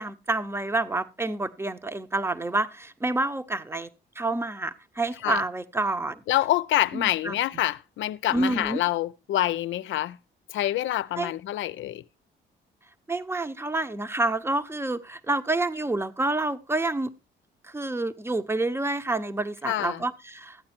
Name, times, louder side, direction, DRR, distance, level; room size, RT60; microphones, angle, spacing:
voice 1, 0.0-3.9 4.2-6.2 6.9-7.4 8.3-8.8 11.2-11.3 13.1-17.1 17.6-20.6, right 2 dB, 10° right, 0.9 m, -28 dB
voice 2, 6.3-10.2 10.5-12.0 19.6-20.0, left 14 dB, 75° left, 0.6 m, -26 dB
13.5 x 8.8 x 4.4 m
cardioid pair, 90°, 20 cm